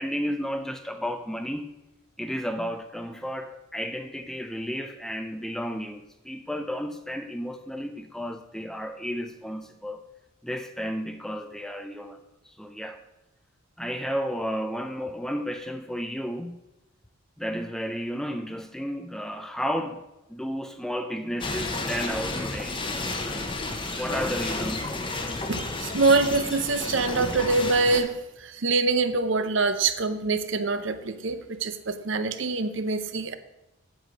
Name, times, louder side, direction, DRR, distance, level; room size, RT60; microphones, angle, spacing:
voice 1, 0.0-1.6 2.2-10.1 10.4-13.0 13.8-16.6 17.4-20.0 20.3-22.8 24.0-25.0, equal, ahead, 7 dB, 0.4 m, -32 dB
sound 1, 21.4-28.0, left 2 dB, 25° left, 0.9 m, -31 dB
voice 2, 25.5-33.3, right 3 dB, 60° right, 11 dB, 0.7 m, -25 dB
7.9 x 7.8 x 5.1 m, 0.96 s
head